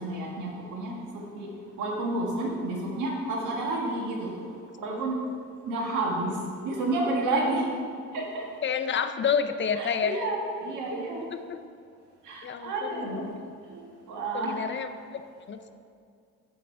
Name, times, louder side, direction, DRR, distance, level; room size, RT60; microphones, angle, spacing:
voice 1, 0.0-1.5 1.8-4.4 4.8-5.2 5.7-7.7 8.1-8.5 9.7-11.2 12.2-13.3 13.7-13.8 14.1-14.8, right 2 dB, 85° right, -1 dB, 1.5 m, -30 dB
voice 2, 8.6-10.2 11.3-11.6 12.4-13.5 14.3-15.2 15.5-15.7, left 7 dB, 40° left, 9 dB, 0.5 m, -30 dB
8.4 x 5.2 x 4.6 m, 2.3 s
cardioid pair, 90°, 30 cm